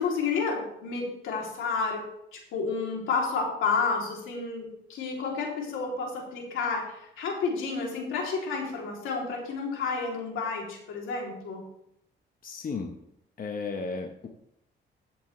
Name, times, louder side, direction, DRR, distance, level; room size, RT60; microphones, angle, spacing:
voice 1, 0.0-2.0 2.3-11.6, left 4 dB, 85° left, -1 dB, 3.1 m, -30 dB
voice 2, 12.4-12.9 13.4-14.3, left 4 dB, 45° left, 3 dB, 1.2 m, -34 dB
15.0 x 7.8 x 3.3 m, 0.78 s
cardioid pair, 90°, 20 cm